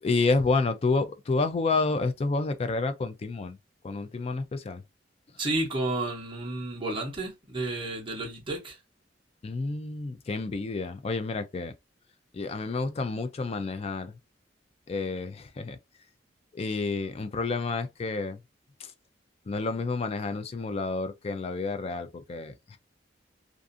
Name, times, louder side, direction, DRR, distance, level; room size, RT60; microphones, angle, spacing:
voice 1, 0.0-3.6 3.8-4.8 9.4-11.7 12.3-14.2 14.9-15.8 16.5-18.4 18.8-18.9 19.5-22.8, left 3 dB, 35° left, 0.4 m, -29 dB
voice 2, 5.4-8.8, right 2 dB, 30° right, 0.8 m, -31 dB
2.5 x 2.4 x 2.5 m
head